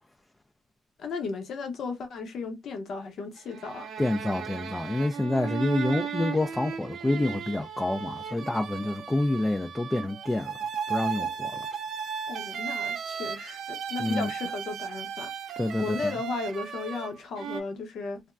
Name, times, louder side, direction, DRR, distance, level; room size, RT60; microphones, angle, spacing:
voice 1, 1.0-3.9 12.3-15.3 15.8-18.2, left 4 dB, 65° left, 0.8 m, -35 dB
sound 1, 3.4-17.6, right 7 dB, 70° right, 0.6 m, -35 dB
voice 2, 4.0-10.6 10.9-11.7 14.0-14.3 15.6-16.2, left 2 dB, 15° left, 0.4 m, -28 dB
3.4 x 2.1 x 2.4 m
cardioid pair, 90°, 0 cm